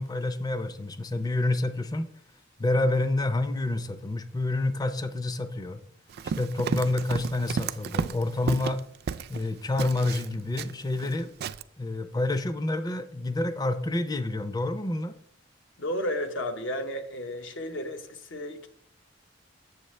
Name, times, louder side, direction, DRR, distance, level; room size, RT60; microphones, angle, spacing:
voice 1, 0.0-2.1 2.6-5.8 6.4-8.8 9.3-11.3 11.8-15.1, left 2 dB, 20° left, 0.4 m, -28 dB
Run, 6.1-9.4 9.8-11.2 11.4-11.6, right 6 dB, 50° right, 0.3 m, -33 dB
voice 2, 15.8-18.7, left 1 dB, 75° left, 0.9 m, -33 dB
7.9 x 7.2 x 3.2 m
head